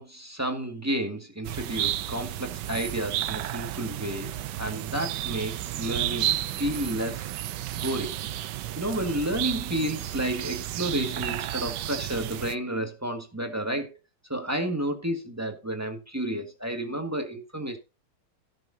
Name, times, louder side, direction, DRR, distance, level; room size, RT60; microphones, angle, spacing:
voice 1, 0.0-4.3 4.6-7.3 7.8-8.1 8.8-13.9 14.3-17.8, right 1 dB, 10° right, 1.9 m, -31 dB
sound 1, 1.4-12.5, right 13 dB, 80° right, 1.3 m, -32 dB
17.0 x 6.7 x 2.8 m
omnidirectional pair, 1.9 m